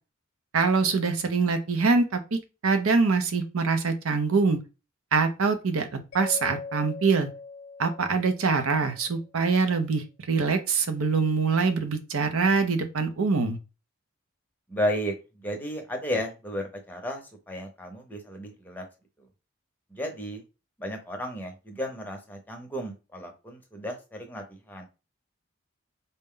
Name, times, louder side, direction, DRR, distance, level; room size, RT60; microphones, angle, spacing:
voice 1, 0.5-4.6 5.1-7.3 7.8-13.6, right 4 dB, 80° right, 8 dB, 0.7 m, -24 dB
Mallet percussion, 6.1-9.1, left 4 dB, 55° left, 0.5 m, -41 dB
voice 2, 14.7-18.8 19.9-20.4 20.8-24.8, equal, 10° left, 2 dB, 0.7 m, -33 dB
4.0 x 2.2 x 3.7 m, 0.30 s
head